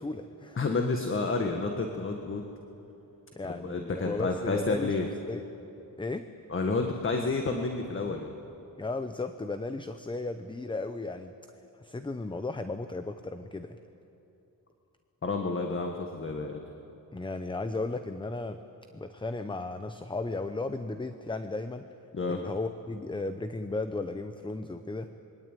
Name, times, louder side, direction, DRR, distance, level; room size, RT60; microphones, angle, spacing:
voice 1, 0.0-0.6 3.3-5.0 5.3-5.4 6.0-6.3 8.8-11.3 11.8-13.8 17.1-18.6 18.9-21.9 22.3-25.1, left 3 dB, 15° left, 9 dB, 0.7 m, -35 dB
voice 2, 0.5-2.4 3.4-5.1 6.5-8.3 15.2-16.6 22.1-22.4, left 3 dB, 35° left, 3 dB, 1.6 m, -30 dB
26.0 x 23.0 x 9.1 m, 2.9 s
wide cardioid pair, 145°, 36 cm